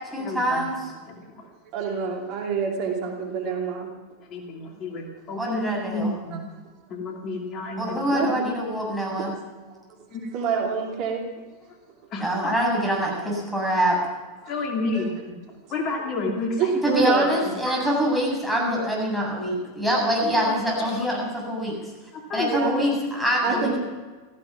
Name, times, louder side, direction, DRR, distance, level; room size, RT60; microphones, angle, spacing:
voice 1, 0.1-0.9 5.4-6.1 7.8-9.3 12.2-14.0 16.8-21.8 22.3-23.8, equal, ahead, -2 dB, 7.4 m, -25 dB
voice 2, 1.7-3.9 6.3-6.4 8.1-8.5 10.3-11.2 14.9-15.1 16.6-17.4 17.7-17.8 22.5-22.9 23.4-23.8, right 5 dB, 50° right, 1 dB, 2.8 m, -26 dB
voice 3, 5.3-5.6 5.9-6.4 6.9-7.8 12.1-12.2 14.5-15.1 15.7-16.5 22.3-22.5, left 3 dB, 40° left, 1 dB, 2.6 m, -28 dB
16.5 x 15.0 x 6.0 m, 1.3 s
figure-of-eight pair, 90°, 0 cm